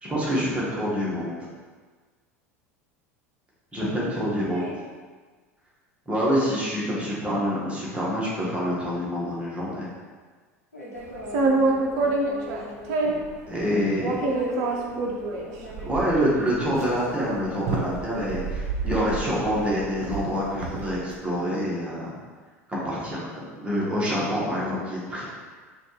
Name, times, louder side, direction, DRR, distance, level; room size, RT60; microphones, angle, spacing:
voice 1, 0.0-1.4 3.7-4.6 6.1-9.9 13.5-14.1 15.8-18.4 18.8-22.1 22.7-25.2, equal, 15° right, -6 dB, 1.4 m, -26 dB
voice 2, 3.8-4.8 10.7-16.0 18.1-18.4, equal, 90° left, -7 dB, 1.0 m, -39 dB
sound 1, 11.2-13.3 14.0-21.0, right 3 dB, 50° right, 0.6 m, -27 dB
4.9 x 2.5 x 3.2 m, 1.4 s
figure-of-eight pair, 75°, 8 cm